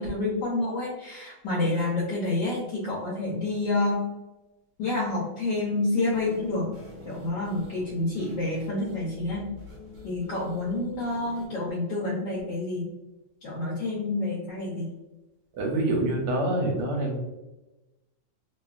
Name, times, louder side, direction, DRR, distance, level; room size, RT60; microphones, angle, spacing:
voice 1, 0.0-4.0 4.8-6.7 7.1-9.4 10.0-12.9 13.4-14.9, left 2 dB, 75° left, -5 dB, 1.2 m, -28 dB
sound 1, 6.1-11.5, left 2 dB, 60° right, 1.0 m, -45 dB
voice 2, 15.5-17.2, right 1 dB, 75° right, 0 dB, 1.1 m, -26 dB
2.9 x 2.3 x 2.3 m, 1.0 s
omnidirectional pair, 1.9 m